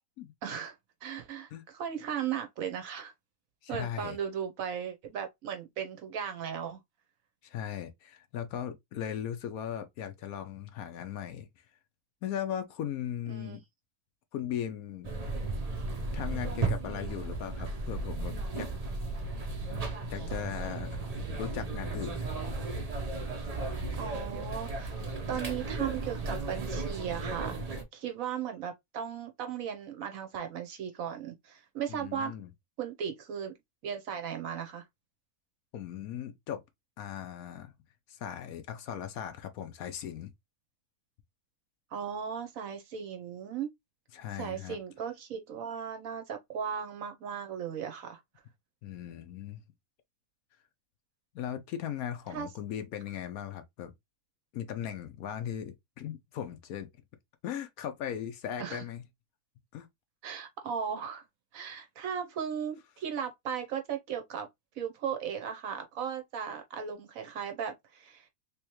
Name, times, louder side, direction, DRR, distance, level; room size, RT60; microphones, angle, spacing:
voice 1, 0.4-0.7 1.0-3.1 3.7-6.8 13.3-13.6 23.9-24.9 25.3-27.6 27.9-32.4 32.8-33.5 33.8-34.8 41.9-43.7 44.4-48.2 52.3-52.5 58.6-58.8 60.2-61.2 61.5-64.5 64.8-68.3, right 8 dB, 65° right, 1.1 m, -36 dB
voice 2, 3.6-4.2 7.4-11.5 12.2-13.6 14.3-15.1 16.1-18.7 19.7-19.8 20.1-22.2 31.9-32.5 35.7-36.6 37.0-37.7 38.1-40.3 44.1-44.8 48.8-49.6 51.3-53.9 54.5-56.9 57.4-59.0 59.7-59.9, left 9 dB, 70° left, 1.0 m, -38 dB
sound 1, 15.0-27.8, right 3 dB, 40° right, 0.6 m, -35 dB
3.5 x 3.0 x 2.9 m
omnidirectional pair, 1.7 m